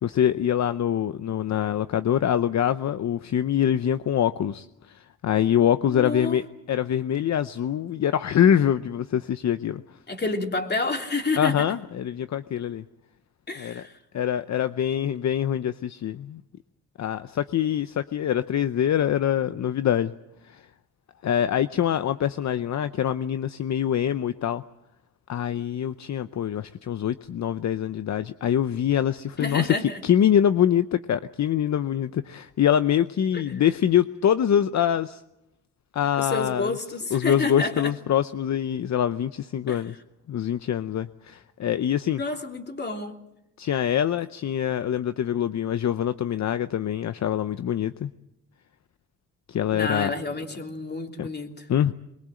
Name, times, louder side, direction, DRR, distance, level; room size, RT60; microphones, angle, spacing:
voice 1, 0.0-6.4 6.7-9.8 11.4-12.8 13.6-13.8 14.1-16.4 17.0-20.1 20.4-20.6 21.2-24.6 25.3-29.7 30.0-35.2 35.9-36.7 37.1-39.9 40.3-42.2 43.6-48.1 49.5-50.1 51.2-51.3 51.7-51.9, left 9 dB, 60° left, 12 dB, 0.8 m, -24 dB
voice 2, 5.9-6.4 10.1-11.6 13.5-14.0 29.4-30.0 33.3-33.4 36.2-37.9 39.7-39.8 42.1-43.2 49.7-51.7, left 3 dB, 30° left, 3 dB, 3.1 m, -29 dB
22.5 x 21.5 x 7.7 m, 0.87 s
cardioid pair, 90°, 32 cm